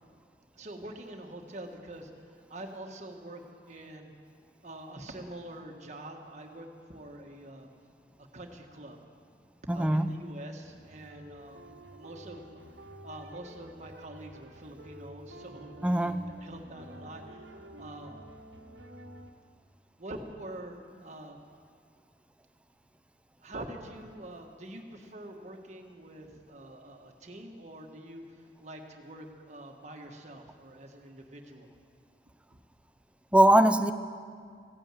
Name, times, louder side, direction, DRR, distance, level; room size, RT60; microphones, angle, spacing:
voice 1, 0.5-3.4 3.7-4.1 4.6-7.7 8.2-9.0 9.7-18.2 20.0-21.4 23.4-31.7 32.5-32.6 33.3-33.4, right 1 dB, 40° right, 2 dB, 1.5 m, -45 dB
voice 2, 9.7-10.1 15.8-16.2 33.3-33.9, right 1 dB, 5° right, 10 dB, 0.5 m, -21 dB
sound 1, 10.6-19.3, right 1 dB, 90° right, 1.3 m, -50 dB
15.5 x 9.0 x 9.0 m, 2.1 s
head